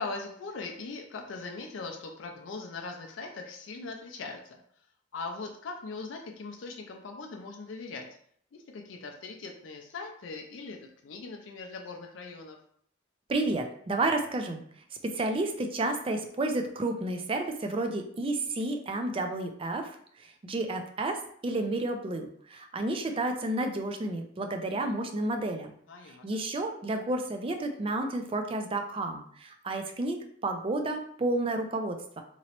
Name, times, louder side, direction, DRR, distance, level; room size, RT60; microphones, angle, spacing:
voice 1, 0.0-4.6 5.1-8.1 8.5-12.6 25.9-26.2, left 3 dB, 75° left, 2 dB, 0.4 m, -40 dB
voice 2, 13.3-14.6 15.0-25.7 26.2-32.2, right 2 dB, 30° right, 5 dB, 0.4 m, -31 dB
3.0 x 2.9 x 2.9 m, 0.63 s
head